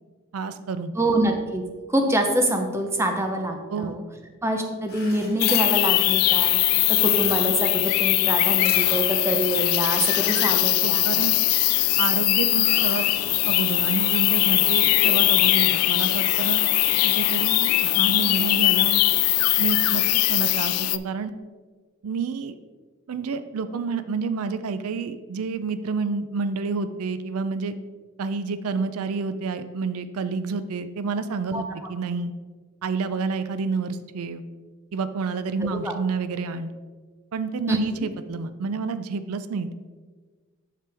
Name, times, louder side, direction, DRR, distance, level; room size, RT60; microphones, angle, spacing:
voice 1, 0.3-0.9 3.7-4.0 10.8-11.4 12.0-13.1 13.5-16.6 17.0-19.0 19.6-20.0 20.3-21.3 22.0-22.6 23.1-27.8 28.2-32.3 32.8-34.4 34.9-36.7 37.3-39.7, right 4 dB, 80° right, 12 dB, 0.4 m, -29 dB
voice 2, 0.9-1.6 1.9-4.0 4.4-11.1 15.0-15.2 31.5-31.6 35.8-35.9 37.7-37.8, right 1 dB, 10° right, 4 dB, 0.7 m, -25 dB
sound 1, 4.9-10.9 11.3-12.1 12.4-13.4, left 3 dB, 45° left, 2.2 m, -39 dB
sound 2, 5.4-21.0, left 18 dB, 85° left, 0.3 m, -21 dB
7.5 x 6.7 x 3.4 m, 1.4 s
head